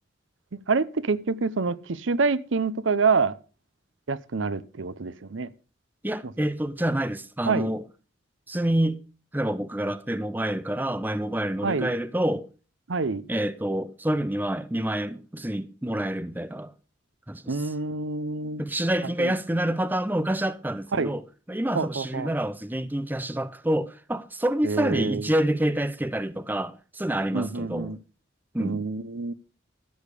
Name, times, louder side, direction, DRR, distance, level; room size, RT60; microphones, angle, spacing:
voice 1, 0.7-3.3 4.1-5.5 7.5-7.7 11.6-11.9 12.9-13.2 17.5-18.6 19.2-19.3 20.9-21.1 21.7-22.3 24.6-25.3 27.3-28.0 28.6-29.3, right 4 dB, 80° right, 0.7 m, -26 dB
voice 2, 6.0-7.8 8.5-9.0 9.3-12.5 13.3-16.7 17.3-17.7 18.6-21.2 21.5-27.9 28.5-28.8, right 1 dB, 10° right, 0.6 m, -27 dB
13.5 x 8.7 x 4.9 m
head